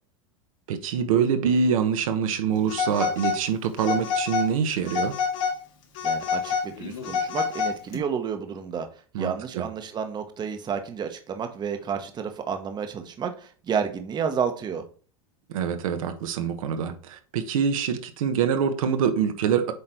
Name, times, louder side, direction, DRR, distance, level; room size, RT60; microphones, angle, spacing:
voice 1, 0.7-5.1 9.1-9.6 15.5-19.7, right 7 dB, 75° right, 1.1 m, -25 dB
Telephone, 2.7-3.4 3.8-4.5 4.9-5.6 5.9-8.0, left 6 dB, 65° left, 2.5 m, -27 dB
voice 2, 6.0-8.9 9.1-14.8, right 7 dB, 25° right, 1.0 m, -30 dB
8.1 x 3.3 x 4.4 m
hypercardioid pair, 115°, 18 cm